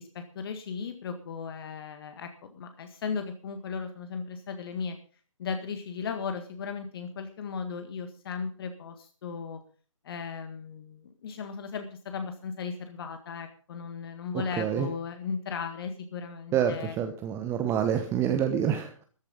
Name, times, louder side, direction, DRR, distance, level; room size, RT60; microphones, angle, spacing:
voice 1, 0.0-5.0 5.4-9.6 10.0-16.9, left 5 dB, 45° left, 7 dB, 1.8 m, -36 dB
voice 2, 14.3-14.9 16.5-19.0, right 9 dB, 15° right, 7 dB, 1.0 m, -27 dB
14.0 x 12.0 x 5.3 m, 0.41 s
figure-of-eight pair, 135°, 17 cm